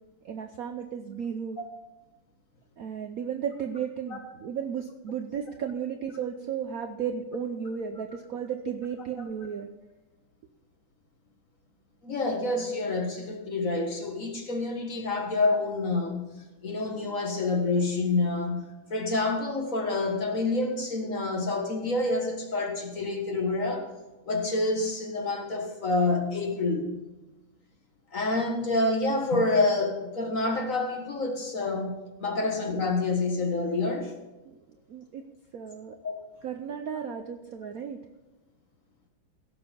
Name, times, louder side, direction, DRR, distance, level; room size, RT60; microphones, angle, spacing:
voice 1, 0.2-1.6 2.8-9.7 32.4-32.5 34.5-34.6 34.9-35.2 35.5-36.0 36.4-38.0, right 7 dB, 65° right, 6 dB, 0.9 m, -34 dB
voice 2, 12.0-16.3 16.6-23.9 24.3-27.0 28.1-34.1 36.0-36.2, left 2 dB, 45° left, 3 dB, 1.8 m, -28 dB
16.5 x 7.0 x 5.3 m, 1.1 s
omnidirectional pair, 2.2 m